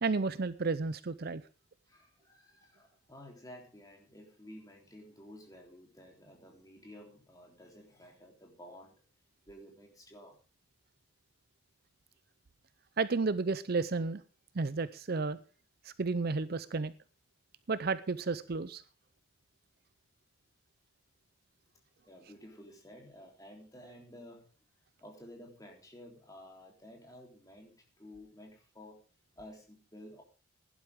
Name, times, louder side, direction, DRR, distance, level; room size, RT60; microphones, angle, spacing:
voice 1, 0.0-1.4 13.0-14.2 14.5-15.4 15.8-16.9 17.7-18.8, right 4 dB, 45° right, 15 dB, 0.5 m, -32 dB
voice 2, 1.9-9.0 9.5-10.4 22.0-24.5 25.0-29.0 29.4-30.2, equal, 15° left, 1 dB, 3.5 m, -53 dB
16.5 x 11.0 x 3.6 m, 0.33 s
head